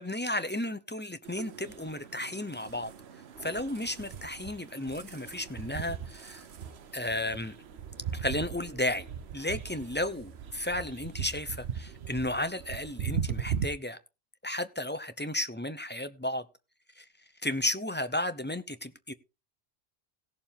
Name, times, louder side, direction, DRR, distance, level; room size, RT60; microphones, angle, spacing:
voice 1, 0.0-2.9 3.4-6.5 6.9-7.6 8.1-9.1 9.3-14.0 14.4-16.4 17.0-17.1 17.4-19.1, left 1 dB, 10° left, 0.6 m, -33 dB
sound 1, 1.2-13.7, right 8 dB, 65° right, 1.1 m, -39 dB
18.0 x 6.8 x 3.6 m
omnidirectional pair, 1.2 m